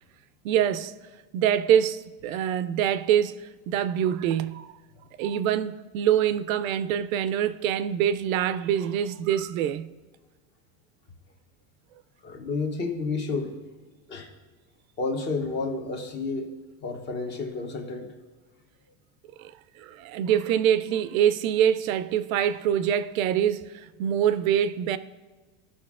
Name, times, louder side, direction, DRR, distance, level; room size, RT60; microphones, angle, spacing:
voice 1, 0.4-0.9 1.3-4.7 5.2-9.9 19.4-19.5 19.8-25.0, right 9 dB, 80° right, 0.5 m, -25 dB
voice 2, 12.2-13.6 14.1-14.3 15.0-16.5 16.8-18.1, left 3 dB, 25° left, 0.8 m, -30 dB
14.0 x 6.1 x 2.4 m
supercardioid pair, 145°, 40 cm